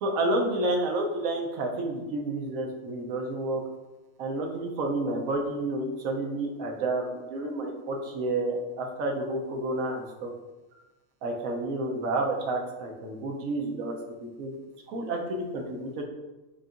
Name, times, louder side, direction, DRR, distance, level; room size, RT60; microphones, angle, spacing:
voice 1, 0.0-3.6 4.2-10.3 11.2-13.9 14.2-14.5 14.9-16.0, right 2 dB, 75° right, 1 dB, 1.1 m, -30 dB
5.0 x 2.7 x 2.4 m, 1.1 s
omnidirectional pair, 1.5 m